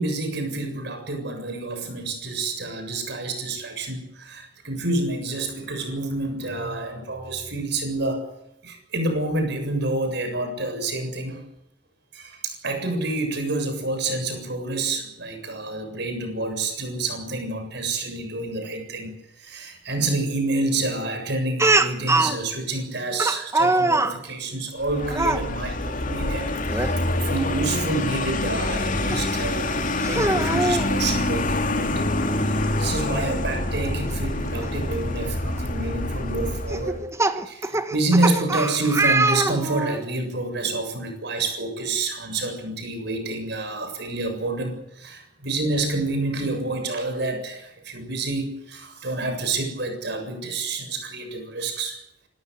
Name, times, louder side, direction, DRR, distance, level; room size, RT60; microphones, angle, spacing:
voice 1, 0.0-8.3 8.6-11.4 12.1-19.1 19.4-32.2 32.5-37.0 37.4-52.0, right 2 dB, 65° right, 6 dB, 7.3 m, -28 dB
Speech, 21.6-22.4 23.2-24.2 25.1-25.4 26.7-26.9 27.4-27.5 29.1-29.2 30.0-30.9 32.2-32.3 32.6-32.7 34.6-34.7 35.4-35.6 36.7-40.0, right 2 dB, 15° right, 1.5 m, -22 dB
Vehicle, 24.8-37.1, left 2 dB, 45° left, 2.7 m, -26 dB
26.0 x 15.5 x 9.6 m, 0.79 s
head